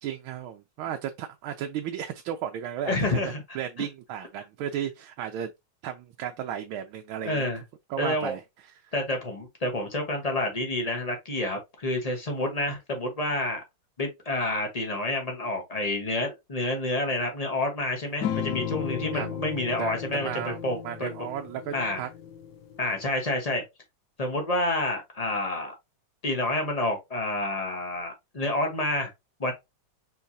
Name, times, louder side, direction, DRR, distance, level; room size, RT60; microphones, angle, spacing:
voice 1, 0.0-5.5 5.8-7.5 7.9-8.9 19.1-19.4 19.8-22.1, right 9 dB, 80° right, 1.4 m, -34 dB
voice 2, 2.8-3.4 7.2-7.6 8.0-8.4 8.9-13.6 14.0-21.3 21.7-22.0 22.8-23.6 24.2-25.7 26.2-29.1 29.4-29.5, left 2 dB, 25° left, 0.9 m, -29 dB
sound 1, 18.2-23.1, left 9 dB, 70° left, 1.1 m, -35 dB
4.6 x 3.9 x 2.7 m
omnidirectional pair, 2.3 m